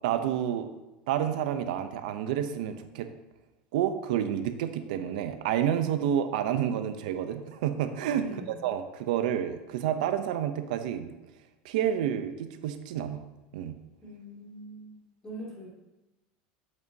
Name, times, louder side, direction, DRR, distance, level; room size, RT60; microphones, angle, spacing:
voice 1, 0.0-0.7 1.1-3.1 3.7-11.1 11.6-13.2 13.5-13.7, right 10 dB, 85° right, 9 dB, 0.7 m, -29 dB
voice 2, 8.2-8.6 14.0-15.7, right 1 dB, 15° left, -5 dB, 2.6 m, -43 dB
7.7 x 7.4 x 2.8 m, 1.0 s
supercardioid pair, 145°, 4 cm